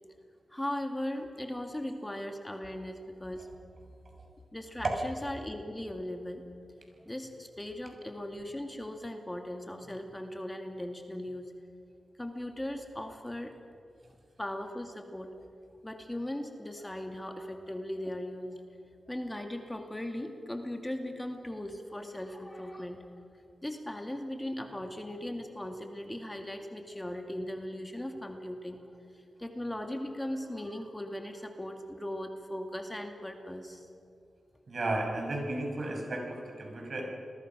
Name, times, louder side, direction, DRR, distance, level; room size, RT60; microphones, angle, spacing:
voice 1, 0.5-3.5 4.5-6.4 7.0-11.5 12.2-13.6 14.4-15.4 15.8-18.6 19.1-23.1 23.6-28.8 29.1-33.9, left 1 dB, 15° left, 4 dB, 2.3 m, -38 dB
voice 2, 34.7-37.0, right 2 dB, 55° right, 1 dB, 6.9 m, -34 dB
29.5 x 21.5 x 6.2 m, 2.4 s
cardioid pair, 55°, 0 cm